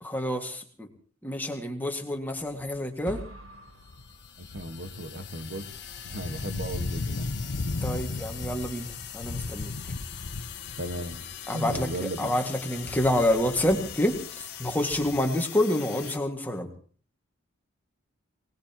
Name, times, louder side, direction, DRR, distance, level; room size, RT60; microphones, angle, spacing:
voice 1, 0.0-0.9 1.2-3.2 7.6-8.9 9.1-9.7 11.5-16.7, left 1 dB, 10° left, 2 dB, 2.0 m, -28 dB
sound 1, 2.6-2.9 3.4-12.2 12.5-15.4, left 2 dB, 70° left, 0.8 m, -36 dB
sound 2, 3.1-5.1, right 1 dB, 75° right, 1.3 m, -45 dB
sound 3, 3.7-16.2, left 10 dB, 55° left, 1.6 m, -42 dB
voice 2, 4.4-5.7 6.1-7.3 10.8-11.3 11.5-12.3, right 1 dB, 55° right, 8 dB, 1.5 m, -35 dB
24.0 x 19.5 x 3.0 m, 0.42 s
head